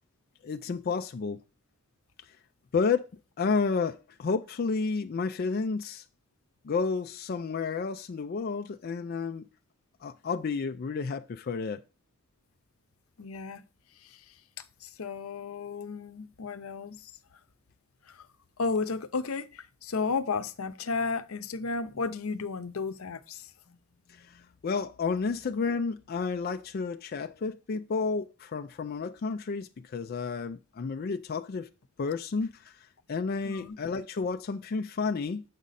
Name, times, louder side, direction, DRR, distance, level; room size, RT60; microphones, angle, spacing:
voice 1, 0.4-1.4 2.7-3.1 3.4-6.0 6.6-9.4 10.0-11.8 24.1-31.7 32.0-32.8 33.1-35.4, left 4 dB, 45° left, 0.4 m, -31 dB
voice 2, 13.2-13.6 14.0-14.2 14.6-17.1 18.1-18.3 18.6-23.5 33.4-33.8, left 4 dB, 80° left, 0.7 m, -33 dB
7.3 x 5.1 x 4.1 m
head